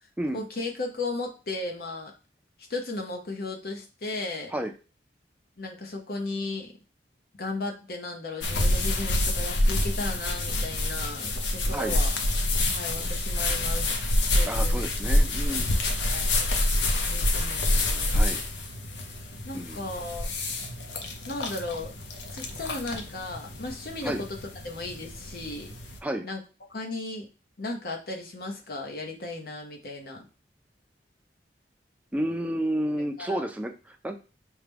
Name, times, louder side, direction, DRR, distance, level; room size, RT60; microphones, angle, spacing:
voice 1, 0.3-2.1 2.7-4.5 5.6-6.7 7.4-12.1 12.7-14.0 14.3-14.9 15.7-15.8 16.1-16.4 17.1-18.2 19.5-20.3 21.3-21.9 22.3-24.4 24.6-25.7 26.2-26.4 26.7-27.3 27.6-30.2 33.2-33.4, left 2 dB, 55° left, 2 dB, 0.8 m, -35 dB
sound 1, 8.4-26.0, left 1 dB, 90° left, 0.6 m, -27 dB
voice 2, 11.6-12.0 14.4-15.7 18.1-18.4 19.5-19.8 24.0-24.2 26.0-26.3 32.1-34.2, right 1 dB, 10° right, 4 dB, 0.4 m, -31 dB
4.7 x 2.2 x 3.4 m, 0.33 s
head